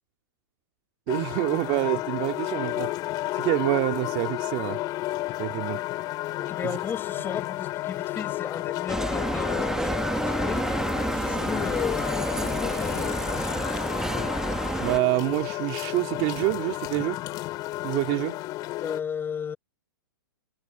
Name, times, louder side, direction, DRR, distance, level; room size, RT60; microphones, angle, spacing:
sound 1, 1.1-19.0, left 17 dB, 35° left, 2.7 m, -32 dB
voice 1, 1.1-2.9 3.3-4.8 5.4-5.8 6.6-6.8 14.8-17.2 17.8-18.4, right 26 dB, 40° right, 2.4 m, -27 dB
voice 2, 6.4-10.7 11.1-13.7 18.8-19.6, left 7 dB, 20° left, 5.9 m, -34 dB
Bicycle, 8.9-15.0, right 2 dB, 5° right, 2.2 m, -29 dB
hypercardioid pair, 120°, 12 cm